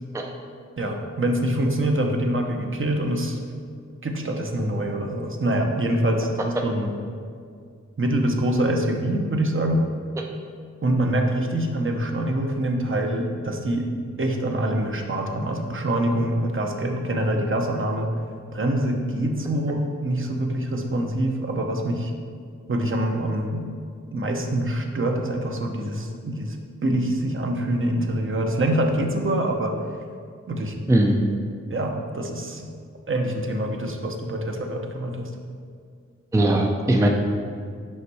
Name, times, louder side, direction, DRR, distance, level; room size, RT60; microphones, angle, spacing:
voice 1, 0.8-3.4 4.0-7.0 8.0-9.9 10.8-13.9 14.2-18.1 18.5-22.1 22.7-23.6 24.1-26.6 26.8-29.7 30.5-30.7 31.7-32.7 33.1-35.3, right 1 dB, 45° right, 2 dB, 0.7 m, -25 dB
voice 2, 30.9-31.2 36.3-37.1, right 1 dB, 10° right, 2 dB, 0.4 m, -19 dB
5.5 x 5.2 x 4.7 m, 2.2 s
wide cardioid pair, 100°, 29 cm